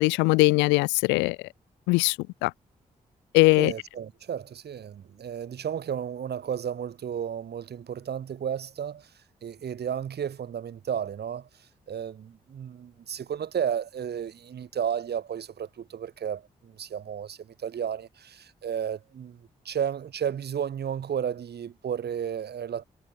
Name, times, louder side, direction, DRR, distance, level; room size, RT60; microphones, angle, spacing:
voice 1, 0.0-1.4 1.9-2.1 2.4-2.5 3.3-3.7, left 25 dB, 85° left, 0.9 m, -20 dB
voice 2, 3.6-9.1 9.4-22.8, right 8 dB, 65° right, 5.3 m, -33 dB
hypercardioid pair, 40°, 18 cm